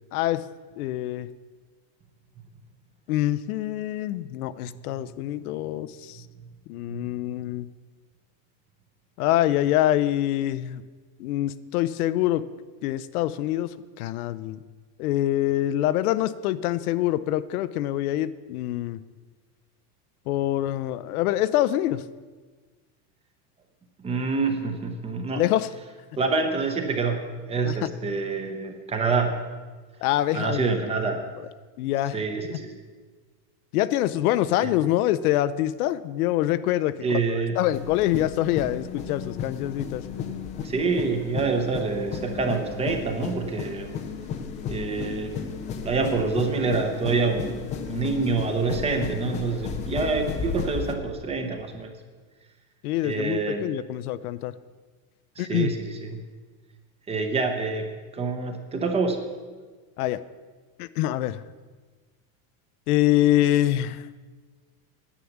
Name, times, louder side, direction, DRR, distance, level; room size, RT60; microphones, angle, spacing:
voice 1, 0.1-0.4 0.8-1.3 3.1-6.2 6.7-7.7 9.2-10.8 11.2-12.4 12.8-14.6 15.0-19.0 20.3-22.0 25.3-25.7 27.6-27.8 30.0-30.7 31.8-32.2 32.5-32.6 33.7-40.0 52.8-54.5 55.4-55.7 60.0-60.2 60.8-61.4 62.9-64.1, left 13 dB, 85° left, 14 dB, 0.7 m, -25 dB
voice 2, 24.0-25.4 26.2-29.4 30.3-31.2 32.1-32.8 34.6-34.7 37.0-37.6 40.6-43.9 44.7-45.3 45.8-51.9 53.0-53.7 55.4-56.2 57.1-59.2, right 4 dB, 15° right, 5 dB, 0.8 m, -27 dB
sound 1, 37.7-50.9, left 6 dB, 20° left, 0.4 m, -34 dB
9.9 x 9.4 x 7.2 m, 1.4 s
supercardioid pair, 175°, 43 cm